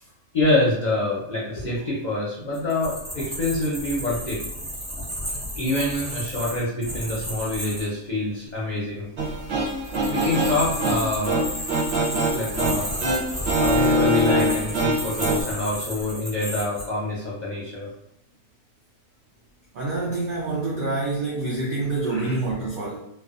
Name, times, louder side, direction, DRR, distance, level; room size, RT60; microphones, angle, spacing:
voice 1, 0.3-4.4 5.6-9.1 10.1-11.5 12.3-12.9 13.5-17.9 22.0-22.4, left 2 dB, 45° left, -6 dB, 0.6 m, -26 dB
sound 1, 2.5-7.9 9.7-16.9, equal, 20° right, 0.9 m, -33 dB
sound 2, 9.2-15.4, equal, 55° right, 0.8 m, -24 dB
voice 2, 19.7-23.1, right 3 dB, 85° right, -4 dB, 0.4 m, -27 dB
2.4 x 2.3 x 2.4 m, 0.78 s
omnidirectional pair, 1.5 m